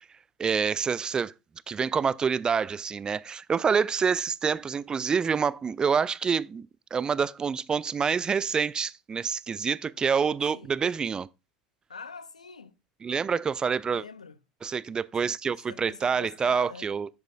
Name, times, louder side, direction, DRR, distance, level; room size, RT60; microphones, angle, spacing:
voice 1, 0.4-1.3 1.7-11.3 13.0-14.0 14.6-17.1, right 6 dB, 20° right, 0.3 m, -27 dB
voice 2, 11.9-12.8 13.9-14.4 15.2-15.3 15.7-16.9, left 4 dB, 80° left, 0.5 m, -44 dB
10.5 x 7.9 x 2.2 m
figure-of-eight pair, 75°, 4 cm